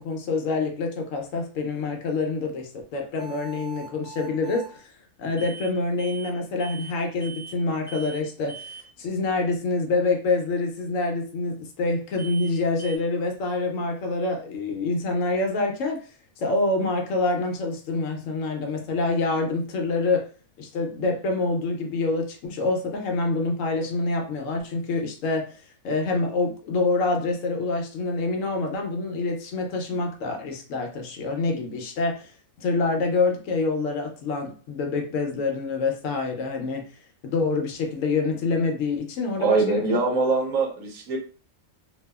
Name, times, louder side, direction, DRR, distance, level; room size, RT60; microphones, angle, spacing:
voice 1, 0.0-4.9 5.2-16.0 16.4-20.3 20.6-25.5 25.8-32.3 32.6-36.8 37.2-40.0, left 3 dB, 75° left, 3 dB, 0.9 m, -26 dB
sound 1, 3.2-4.7 5.4-5.7 6.0-6.3 6.6-6.9 7.2-7.6 7.9-8.2 8.5-8.8 12.2-12.5 12.8-13.0, right 5 dB, 25° left, 0.4 m, -41 dB
voice 2, 39.4-41.2, right 4 dB, 80° right, 1 dB, 1.1 m, -23 dB
2.7 x 2.3 x 2.2 m, 0.39 s
omnidirectional pair, 1.4 m